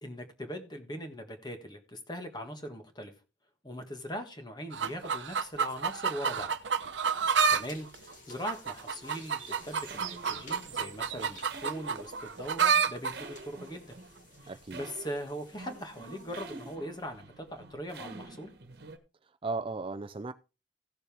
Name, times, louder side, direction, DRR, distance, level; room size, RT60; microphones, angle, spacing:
voice 1, 0.0-3.1 3.6-6.5 7.5-13.9 14.4-18.5, equal, 25° left, 1.6 m, -40 dB
sound 1, 4.7-7.6 7.9-13.1 13.9-14.0, right 6 dB, 75° right, 0.8 m, -29 dB
sound 2, 7.5-16.8, left 2 dB, 45° left, 2.3 m, -54 dB
sound 3, 9.6-19.0, right 3 dB, 55° right, 1.4 m, -48 dB
voice 2, 14.4-14.8 19.2-20.3, right 3 dB, 30° right, 0.4 m, -36 dB
16.0 x 6.8 x 3.5 m
head